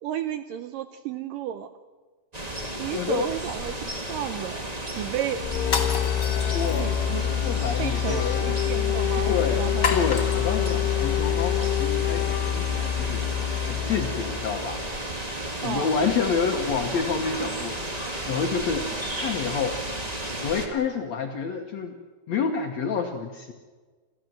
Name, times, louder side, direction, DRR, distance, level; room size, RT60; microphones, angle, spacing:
voice 1, 0.0-1.7 2.8-4.7 5.0-5.4 6.7-7.4 7.8-9.9 15.6-16.0 18.9-19.1, right 10 dB, 75° right, 10 dB, 2.1 m, -33 dB
sound 1, 2.3-20.7, right 1 dB, 40° right, 0.5 m, -33 dB
voice 2, 2.9-3.3 6.5-6.9 7.4-8.5 9.3-13.2 13.6-14.8 15.6-17.8 18.3-18.9 19.2-19.8 20.4-22.0 22.3-23.5, left 6 dB, 65° left, 3 dB, 1.7 m, -28 dB
sound 2, 5.4-14.9, left 11 dB, 90° left, 2.9 m, -26 dB
sound 3, 5.6-7.1 9.8-10.7, left 4 dB, 30° left, 2.7 m, -30 dB
28.5 x 14.0 x 7.8 m, 1.4 s
omnidirectional pair, 4.6 m